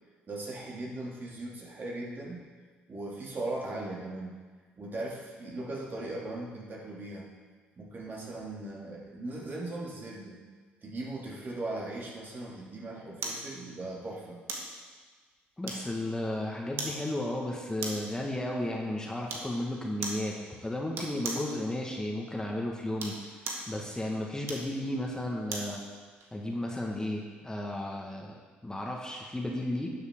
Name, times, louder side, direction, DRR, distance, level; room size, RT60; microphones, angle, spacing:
voice 1, 0.3-2.4 2.9-4.4 4.8-7.3 7.8-10.4 10.8-14.4, right 2 dB, 45° right, -3 dB, 2.7 m, -38 dB
sound 1, 13.2-13.5 14.5-14.7 15.7-16.1 16.8-17.0 17.8-18.1 19.3-19.5 20.0-20.3 20.9-21.5 22.8-23.7 24.4-25.7 26.2-26.3, right 3 dB, 65° right, 1.7 m, -37 dB
voice 2, 15.6-23.3 23.7-25.8 26.3-29.9, left 1 dB, 15° left, -1 dB, 1.7 m, -34 dB
11.5 x 7.9 x 3.8 m, 1.5 s
supercardioid pair, 60°, 5 cm